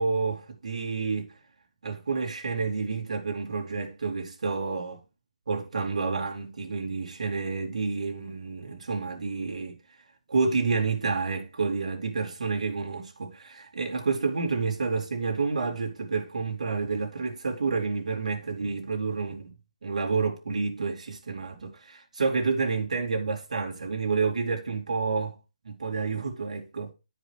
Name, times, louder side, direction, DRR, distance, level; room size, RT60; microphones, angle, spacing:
voice 1, 0.0-1.3 1.8-5.0 5.5-9.8 10.3-19.5 19.8-25.3 25.6-26.9, right 4 dB, 65° right, 2.6 m, -29 dB
12.5 x 5.2 x 3.2 m
hypercardioid pair, 165°, 4 cm